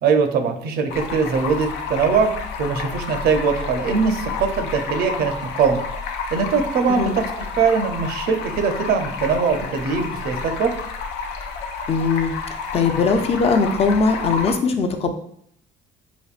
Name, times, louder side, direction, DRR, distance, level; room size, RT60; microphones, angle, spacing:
voice 1, 0.0-2.3 2.6-5.8 6.3-10.7, right 5 dB, 65° right, 6 dB, 0.6 m, -21 dB
Stream, 0.9-14.5, left 5 dB, 90° left, 0.5 m, -30 dB
voice 2, 11.9-12.3 12.7-15.2, left 4 dB, 35° left, 5 dB, 0.5 m, -20 dB
5.2 x 2.5 x 2.4 m, 0.68 s
cardioid pair, 110°, 17 cm